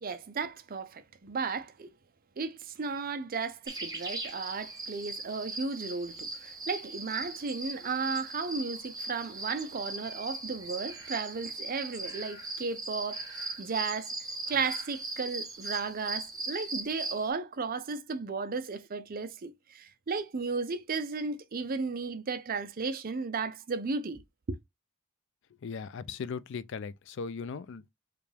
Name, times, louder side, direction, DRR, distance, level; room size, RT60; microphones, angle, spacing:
voice 1, 0.0-1.9 2.4-14.1 14.5-24.2 24.5-24.6, right 4 dB, 45° right, 0.5 m, -34 dB
sound 1, 3.7-17.3, right 2 dB, 20° right, 1.2 m, -39 dB
voice 2, 25.6-27.9, left 5 dB, 65° left, 0.4 m, -38 dB
4.9 x 2.3 x 3.3 m
head